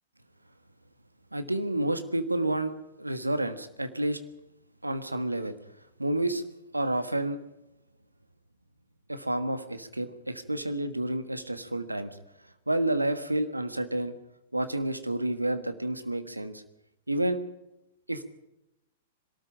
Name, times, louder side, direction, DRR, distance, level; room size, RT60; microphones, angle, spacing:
voice 1, 1.3-2.7 3.0-4.2 4.8-5.5 6.0-6.4 6.7-7.4 9.1-12.1 12.7-14.1 14.5-16.6 17.1-17.4 18.1-18.3, right 1 dB, 85° right, 10 dB, 1.4 m, -29 dB
22.0 x 13.5 x 8.7 m, 0.90 s
figure-of-eight pair, 105°, 0 cm